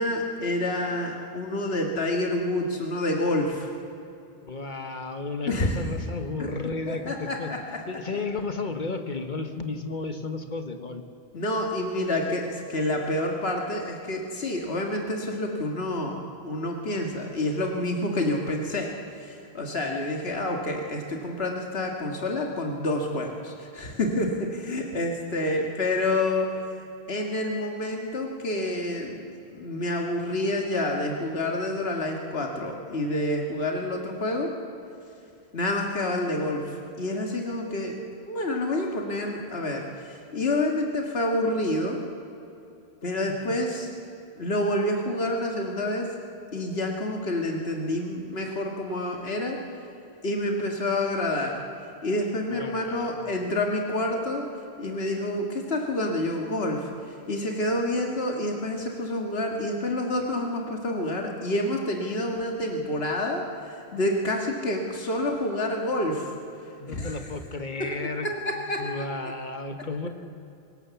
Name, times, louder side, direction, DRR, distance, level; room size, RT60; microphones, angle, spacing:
voice 1, 0.0-3.7 5.5-5.8 6.4-6.5 6.9-7.6 11.3-18.9 19.2-26.6 27.1-29.2 29.4-34.5 35.5-42.0 43.0-43.9 44.4-46.1 46.5-49.6 50.2-51.6 52.0-54.5 54.8-66.3 66.9-67.2 67.8-67.9 68.2-69.1, left 1 dB, 70° left, 1 dB, 2.1 m, -28 dB
voice 2, 4.3-7.5 7.9-11.0 43.3-43.4 52.5-53.2 66.8-68.3 68.8-70.1, left 3 dB, 50° left, 7 dB, 1.5 m, -33 dB
25.5 x 17.5 x 7.1 m, 2.7 s
omnidirectional pair, 1.1 m